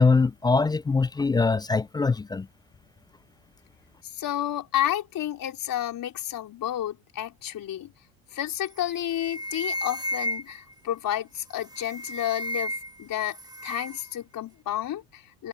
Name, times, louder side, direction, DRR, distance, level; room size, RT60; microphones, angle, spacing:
voice 1, 0.0-2.5, left 4 dB, 10° left, 0.4 m, -22 dB
voice 2, 4.0-7.9 8.3-15.5, left 12 dB, 45° left, 4.7 m, -31 dB
sound 1, 8.6-8.8 9.1-10.7 11.6-13.0 13.3-14.1, left 1 dB, 10° right, 1.9 m, -33 dB
hypercardioid pair, 80°, 45 cm